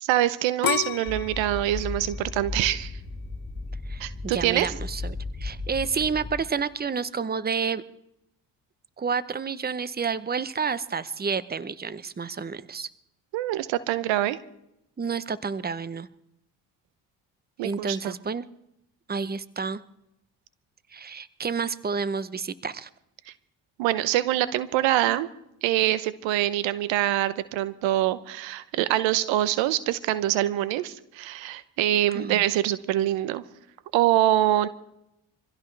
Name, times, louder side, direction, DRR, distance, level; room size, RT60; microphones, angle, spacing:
voice 1, 0.0-2.9 4.0-4.7 13.3-14.4 17.6-18.1 23.8-25.3 25.6-33.4 33.9-34.7, right 14 dB, 85° right, 15 dB, 0.9 m, -24 dB
sound 1, 0.6-3.5 4.1-4.5, left 13 dB, 50° left, 0.7 m, -32 dB
sound 2, 1.1-6.4, left 3 dB, 10° left, 4.5 m, -35 dB
voice 2, 3.9-7.8 9.0-12.9 15.0-16.1 17.6-18.5 19.1-19.8 20.9-22.9 32.1-32.4, right 5 dB, 20° right, 16 dB, 0.8 m, -30 dB
25.0 x 16.0 x 3.3 m, 0.81 s
supercardioid pair, 55°, 44 cm